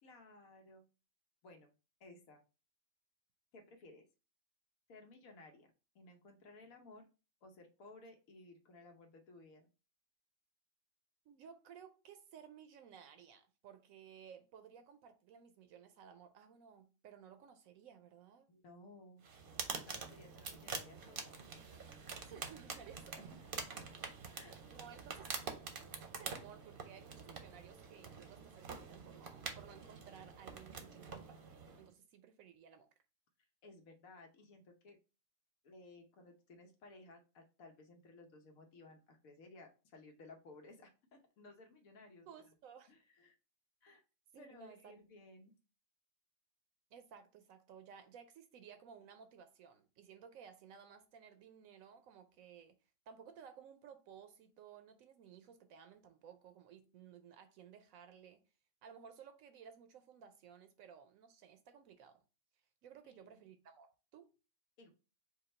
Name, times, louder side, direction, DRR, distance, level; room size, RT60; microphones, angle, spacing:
voice 1, 0.0-0.8 1.4-1.7 2.0-2.4 3.5-4.0 4.9-7.1 7.4-9.7 18.5-19.2 19.9-21.3 23.2-23.3 24.3-24.5 33.6-35.0 35.6-42.3 42.9-43.3 43.8-44.0 44.4-45.5 63.0-63.3 64.8-64.9, left 2 dB, 80° left, 1.3 m, -58 dB
voice 2, 11.3-18.5 22.2-23.3 23.9-24.0 24.7-25.3 26.2-31.4 31.8-32.9 42.3-42.9 44.3-44.9 46.9-52.8 53.1-58.4 58.8-62.2 62.8-64.3, right 7 dB, 80° right, 1.0 m, -57 dB
sound 1, 19.2-31.9, right 5 dB, 50° right, 0.8 m, -47 dB
5.0 x 2.3 x 4.3 m
omnidirectional pair, 1.4 m